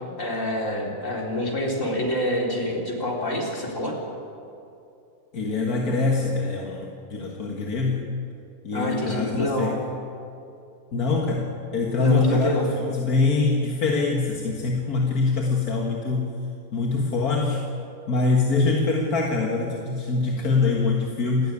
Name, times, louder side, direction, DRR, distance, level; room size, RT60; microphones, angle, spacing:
voice 1, 0.2-4.0 8.7-9.8 12.0-12.7, left 1 dB, 60° left, -1 dB, 4.1 m, -26 dB
voice 2, 5.3-8.1 8.6-9.8 10.9-16.3 16.7-17.6 18.1-21.5, left 3 dB, 90° left, 0 dB, 2.3 m, -24 dB
28.0 x 12.5 x 9.9 m, 2.6 s
omnidirectional pair, 1.5 m